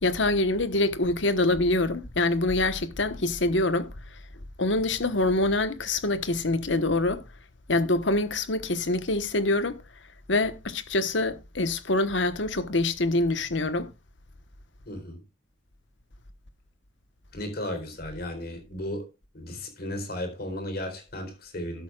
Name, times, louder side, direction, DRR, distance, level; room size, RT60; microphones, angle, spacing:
voice 1, 0.0-3.9 4.6-7.2 7.7-9.8 10.3-13.9, left 2 dB, 70° left, 1.2 m, -25 dB
voice 2, 14.9-15.2 17.3-19.1 19.3-21.8, left 1 dB, 55° left, 4.0 m, -35 dB
12.5 x 12.0 x 2.4 m
head